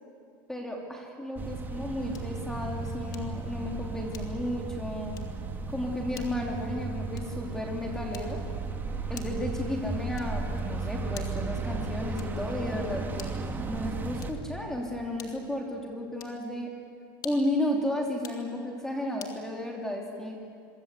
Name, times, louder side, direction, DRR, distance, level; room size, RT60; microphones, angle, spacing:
voice 1, 0.5-5.2 5.7-8.4 9.1-13.3 13.7-16.7 17.2-20.4, left 1 dB, 5° left, 0 dB, 2.9 m, -33 dB
sound 1, 1.4-14.3, right 3 dB, 20° right, 2.1 m, -35 dB
sound 2, 2.1-2.4 3.1-3.4 4.1-4.6 5.1-5.4 6.1-6.4 7.1-7.5 8.1-8.5 9.1-9.5 10.1-10.5 11.1-11.5 12.1-12.5 13.1-13.5 14.1-14.5 15.2-15.6 16.1-16.4 17.1-17.6 18.1-18.5 19.2-19.4, left 8 dB, 35° left, 2.7 m, -48 dB
28.0 x 23.5 x 8.3 m, 2.4 s
supercardioid pair, 145°, 11 cm